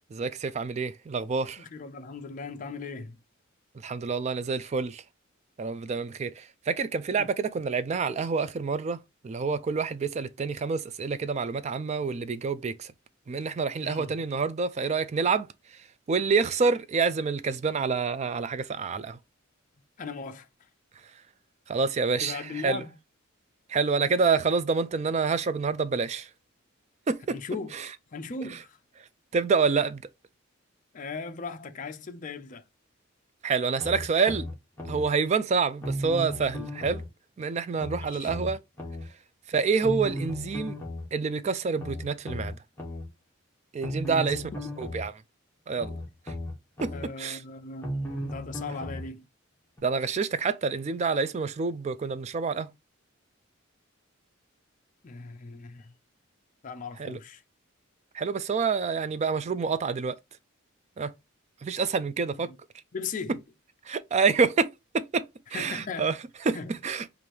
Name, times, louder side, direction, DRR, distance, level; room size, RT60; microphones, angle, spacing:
voice 1, 0.1-1.6 3.8-5.0 5.6-12.9 13.3-15.5 16.1-19.2 21.7-22.8 23.7-26.3 27.1-27.4 27.7-27.9 29.3-30.0 33.4-34.5 34.9-37.0 37.4-38.6 39.5-40.8 41.1-42.6 43.7-44.5 44.8-45.1 45.7-46.0 46.3-46.4 46.8-46.9 47.2-47.4 49.8-52.7 57.0-57.2 58.1-60.2 61.0-61.1 61.6-62.5 63.9-65.3 65.5-66.2 66.4-67.0, right 5 dB, 30° right, 0.3 m, -27 dB
voice 2, 1.6-3.2 7.2-7.3 13.8-14.1 20.0-20.5 22.2-23.0 27.3-27.7 28.1-28.8 30.9-32.6 37.9-38.3 44.0-44.4 46.9-49.3 55.0-55.9 56.6-57.4 62.4-62.6 62.9-63.4 65.5-66.2 66.5-66.8, left 4 dB, 40° left, 0.4 m, -38 dB
sound 1, 33.8-35.1 35.8-37.1 37.8-39.1 39.8-41.1 41.8-43.1 43.8-45.1 45.8-47.1 47.8-49.1 49.8-49.9, equal, 10° left, 1.3 m, -35 dB
4.7 x 2.6 x 2.8 m
head